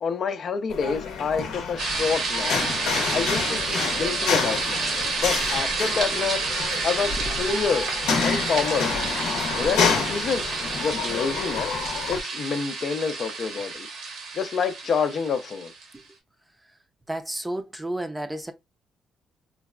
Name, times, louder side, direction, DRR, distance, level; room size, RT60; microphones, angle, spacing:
voice 1, 0.0-2.6 3.1-4.9 5.2-6.4 6.8-7.9 8.2-8.9 9.6-10.4 10.8-11.7 12.1-13.9 14.4-15.7, left 5 dB, 55° left, 0.4 m, -27 dB
sound 1, 0.7-12.2, left 5 dB, 85° left, 0.7 m, -29 dB
sound 2, 1.8-15.8, right 4 dB, 75° right, 1.0 m, -29 dB
voice 2, 17.1-18.5, right 1 dB, 10° right, 0.5 m, -31 dB
3.9 x 2.1 x 2.3 m
cardioid pair, 90°, 0 cm